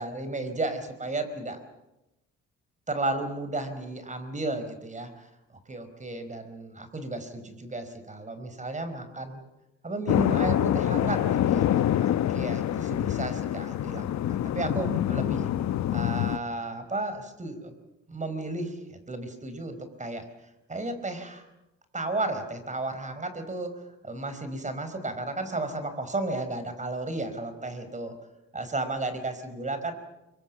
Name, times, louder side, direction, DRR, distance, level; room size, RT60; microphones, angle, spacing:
voice 1, 0.0-1.6 2.9-5.3 5.7-9.4 9.8-11.6 12.0-15.5 15.9-17.7 18.1-18.8 19.1-20.3 20.7-21.5 21.9-28.2 28.5-29.9, right 2 dB, 25° right, 9 dB, 4.3 m, -33 dB
sound 1, 10.1-16.4, left 11 dB, 65° left, 1.0 m, -26 dB
25.0 x 23.5 x 7.3 m, 0.95 s
cardioid pair, 90°, 30 cm